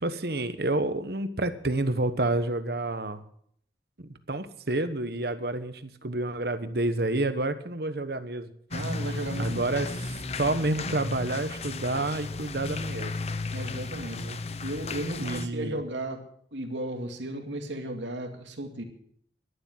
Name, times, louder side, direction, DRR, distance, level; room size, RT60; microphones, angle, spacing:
voice 1, 0.0-3.2 4.0-8.5 9.4-13.1 14.1-14.4 15.2-15.8, right 2 dB, 60° right, 10 dB, 1.1 m, -29 dB
sound 1, 8.7-15.5, left 3 dB, 35° left, 0.7 m, -34 dB
voice 2, 8.7-9.6 13.5-14.2 14.6-16.2 16.5-18.8, right 1 dB, 85° right, 4 dB, 2.4 m, -34 dB
12.0 x 11.5 x 7.4 m, 0.66 s
head